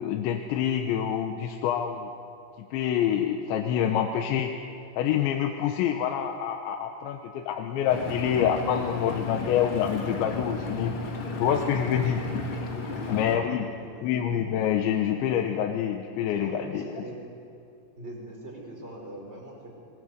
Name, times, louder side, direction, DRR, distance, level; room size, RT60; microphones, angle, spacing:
voice 1, 0.0-2.1 2.7-4.5 5.0-11.0 11.4-12.2 13.1-13.7 14.0-17.0, left 9 dB, 90° left, 4 dB, 3.3 m, -26 dB
Engine, 7.9-13.4, left 3 dB, 50° left, 1.6 m, -33 dB
voice 2, 12.7-14.1 16.3-17.2 17.9-19.8, right 1 dB, 15° right, 0 dB, 4.7 m, -42 dB
26.5 x 20.5 x 8.0 m, 2.5 s
omnidirectional pair, 5.2 m